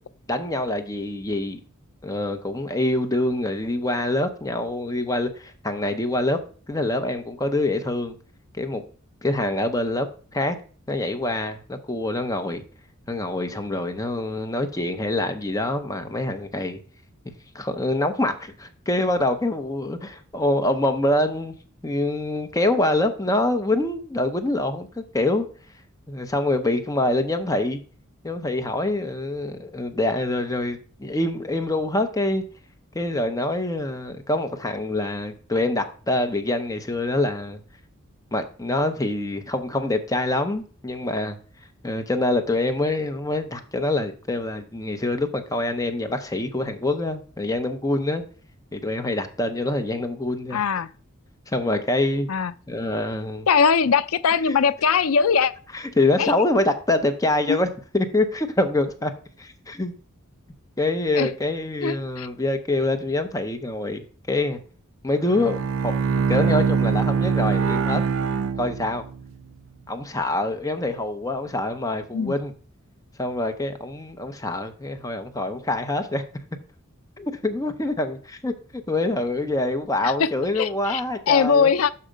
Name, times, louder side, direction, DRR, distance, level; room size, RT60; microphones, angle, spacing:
voice 1, 0.3-1.6 2.0-6.4 6.7-8.2 8.6-8.8 9.2-10.1 10.3-10.6 10.9-12.6 13.1-16.8 17.5-21.6 21.8-25.5 26.1-27.8 28.2-32.4 32.9-37.6 38.3-41.4 41.8-48.2 48.7-50.6 51.5-52.3 52.7-53.5 55.7-57.7 57.9-59.1 59.4-59.9 60.8-64.0 64.3-64.6 65.0-65.6 65.8-68.0 68.5-69.0 69.9-72.5 73.2-76.2 77.2-78.5 78.9-81.7, left 2 dB, 15° left, 0.7 m, -25 dB
voice 2, 50.5-50.9 52.3-52.5 53.5-55.5 56.2-56.3 57.5-57.6 61.1-61.3 61.8-62.3 72.1-72.4 80.0-80.3 80.6-81.0 81.3-81.9, left 6 dB, 80° left, 0.5 m, -20 dB
Bowed string instrument, 65.2-69.3, right 5 dB, 65° right, 0.4 m, -23 dB
6.4 x 5.6 x 5.0 m
head